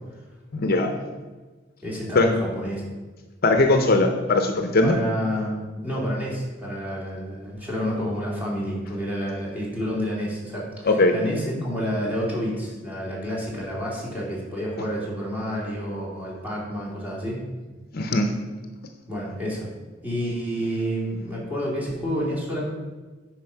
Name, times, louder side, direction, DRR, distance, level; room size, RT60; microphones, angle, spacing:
voice 1, 0.5-0.9 2.1-2.3 3.4-5.0 10.8-11.1 17.9-18.3, left 2 dB, 50° left, 5 dB, 0.7 m, -19 dB
voice 2, 1.8-2.8 4.8-17.4 19.1-19.7 20.0-22.6, equal, 10° right, -5 dB, 2.8 m, -29 dB
10.0 x 4.8 x 5.8 m, 1.3 s
head